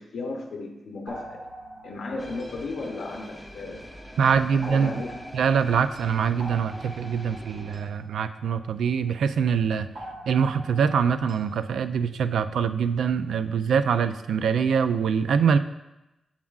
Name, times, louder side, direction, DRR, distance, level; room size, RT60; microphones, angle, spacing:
voice 1, 0.0-1.5 1.8-3.8 4.2-5.2, left 3 dB, 80° left, 1 dB, 0.7 m, -35 dB
sound 1, 1.1-3.8 4.6-9.2 9.9-11.7, right 1 dB, 65° right, 1.9 m, -44 dB
sound 2, 2.2-7.8, equal, ahead, 0.8 m, -44 dB
voice 2, 4.2-4.9 5.3-9.9 10.3-15.6, right 6 dB, 85° right, 11 dB, 0.3 m, -24 dB
7.4 x 7.1 x 2.4 m, 0.95 s
wide cardioid pair, 110°, 0 cm